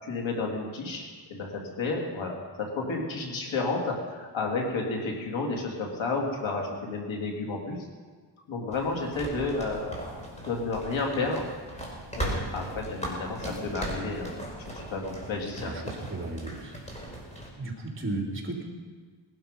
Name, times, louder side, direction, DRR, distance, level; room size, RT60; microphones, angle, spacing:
voice 1, 0.0-2.4 2.7-7.8 8.5-9.9 10.4-11.5 12.1-14.4 14.9-15.7, left 3 dB, 85° left, 0 dB, 3.3 m, -31 dB
sound 1, 8.7-17.5, right 1 dB, 15° left, 4.7 m, -38 dB
voice 2, 15.5-16.7 17.5-18.6, right 2 dB, 25° right, 0 dB, 3.4 m, -34 dB
20.0 x 12.5 x 5.4 m, 1.5 s
cardioid pair, 105°, 46 cm